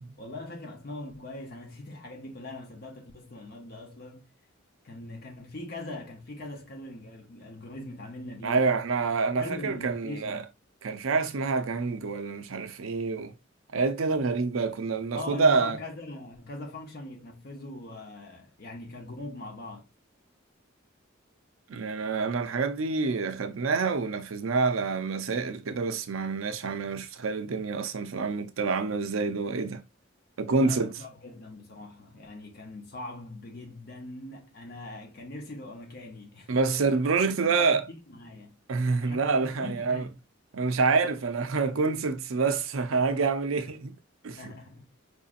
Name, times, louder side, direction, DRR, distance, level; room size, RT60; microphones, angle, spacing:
voice 1, 0.2-4.3 4.8-9.1 9.4-10.5 15.2-19.9 30.6-36.6 37.2-38.6 39.0-40.2 43.6-43.7 44.4-44.9, left 2 dB, 50° left, 0.7 m, -41 dB
voice 2, 8.4-10.4 10.8-13.3 13.7-15.8 21.7-29.8 30.4-30.9 36.5-37.8 38.7-40.1 40.5-43.9 44.2-44.5, right 4 dB, 85° right, 0.5 m, -27 dB
4.7 x 2.6 x 2.4 m
head